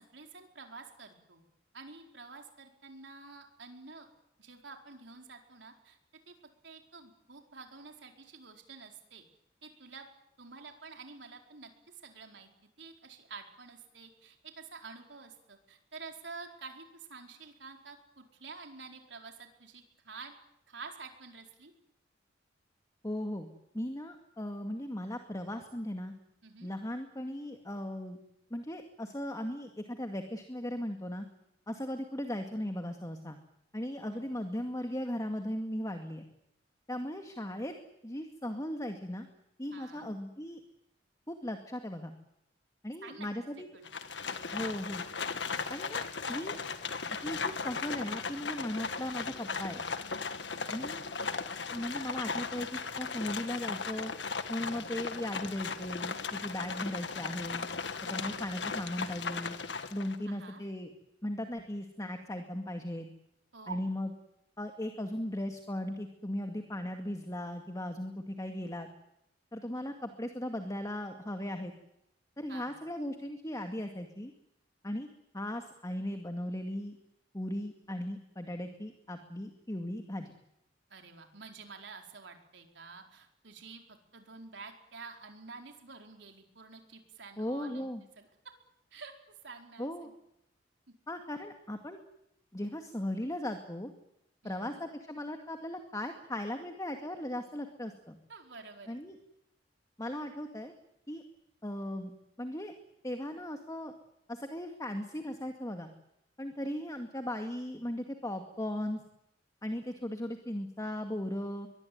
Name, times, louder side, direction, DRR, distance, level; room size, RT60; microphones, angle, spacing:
voice 1, 0.0-1.4 1.7-4.1 4.4-6.0 6.3-6.4 6.6-9.2 9.6-10.1 10.4-12.5 12.8-20.3 20.7-21.7 26.4-26.7 34.1-34.3 39.7-40.1 43.0-43.3 43.6-43.9 45.3-45.4 60.3-60.6 63.5-63.9 72.5-72.8 80.9-87.9 88.2-88.3 88.9-89.1 89.4-90.1 94.4-94.8 98.3-99.0, right 4 dB, 75° right, 3 dB, 4.6 m, -49 dB
voice 2, 23.0-23.5 23.7-26.1 26.6-28.2 28.5-31.3 31.7-33.4 33.7-36.3 36.9-37.7 38.0-39.3 39.6-40.6 41.3-42.1 42.8-43.7 44.5-45.1 45.7-46.6 47.1-49.8 50.7-51.0 51.7-54.1 54.5-57.7 58.0-59.5 59.9-60.9 61.2-63.1 63.7-64.1 64.6-68.9 69.5-71.7 72.4-74.3 74.8-75.1 75.3-77.0 77.3-80.3 87.4-88.0 89.8-90.1 91.1-92.0 92.5-93.9 94.4-98.2 98.9-99.2 100.0-100.7 101.1-101.2 101.6-102.1 102.4-102.7 103.0-103.9 104.3-105.9 106.4-109.0 109.6-111.7, left 1 dB, 20° left, 6 dB, 2.2 m, -37 dB
Livestock farm animals working animals, 43.8-60.2, left 5 dB, 70° left, 1.7 m, -37 dB
23.0 x 22.0 x 9.4 m, 0.81 s
head